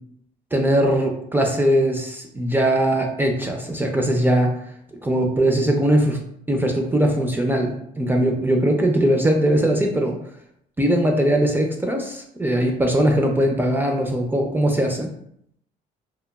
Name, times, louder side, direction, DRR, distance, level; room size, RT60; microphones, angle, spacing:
voice 1, 0.5-4.6 5.0-6.2 6.5-10.1 10.8-15.1, right 1 dB, 10° right, 2 dB, 0.3 m, -20 dB
2.9 x 2.2 x 2.2 m, 0.70 s
cardioid pair, 110°, 17 cm